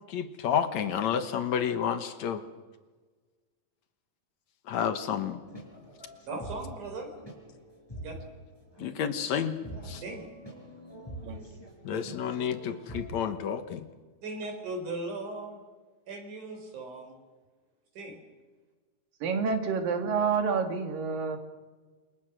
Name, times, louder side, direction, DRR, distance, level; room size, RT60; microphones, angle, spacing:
voice 1, 0.1-2.4 4.7-5.4 8.8-9.6 9.9-10.0 11.8-13.9, left 8 dB, 65° left, 9 dB, 2.2 m, -30 dB
sound 1, 5.1-13.3, right 1 dB, 5° left, 5.4 m, -45 dB
voice 2, 6.2-7.1 8.0-8.1 9.8-10.3 14.2-15.6 16.1-17.2 18.0-18.2, right 2 dB, 65° right, 4 dB, 5.9 m, -38 dB
voice 3, 19.2-21.4, right 5 dB, 85° right, 5 dB, 3.9 m, -28 dB
28.0 x 23.5 x 6.2 m, 1.4 s
omnidirectional pair, 3.9 m